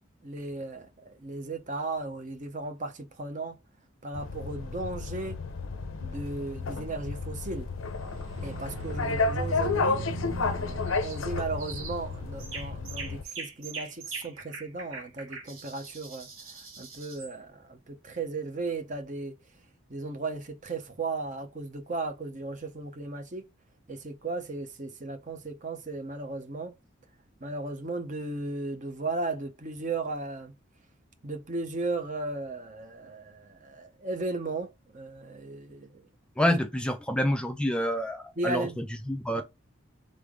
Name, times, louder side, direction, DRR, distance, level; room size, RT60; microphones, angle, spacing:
voice 1, 0.2-3.6 4.0-5.4 6.0-7.7 8.4-10.0 10.4-16.3 16.8-19.3 19.9-23.4 23.9-26.8 27.4-30.5 31.2-36.0 36.4-36.6 38.4-38.8 39.3-39.4, right 3 dB, 40° right, 0.7 m, -35 dB
sound 1, 4.1-13.2, left 4 dB, 80° left, 0.6 m, -32 dB
sound 2, 7.8-12.8, right 3 dB, 70° right, 0.8 m, -39 dB
sound 3, 10.9-11.2 11.6-12.0 12.4-17.3, right 4 dB, 85° right, 1.3 m, -42 dB
voice 2, 36.4-39.4, equal, 5° left, 0.4 m, -28 dB
3.8 x 3.5 x 3.6 m
head